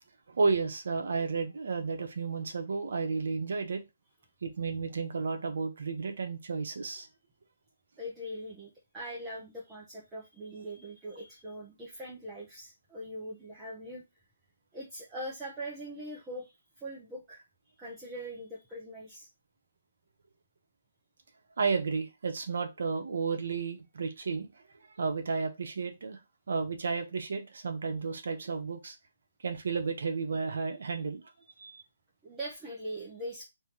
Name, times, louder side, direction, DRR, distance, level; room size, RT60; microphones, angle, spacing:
voice 1, 0.3-3.8 4.4-7.1 21.6-24.5 25.0-26.2 26.5-29.0 29.4-31.2 31.6-31.8, right 4 dB, 70° right, 6 dB, 0.9 m, -32 dB
voice 2, 8.0-14.0 14.7-17.4 17.8-19.3 32.2-33.4, right 1 dB, 10° right, -6 dB, 0.9 m, -42 dB
3.5 x 2.8 x 4.5 m, 0.23 s
hypercardioid pair, 160°, 0 cm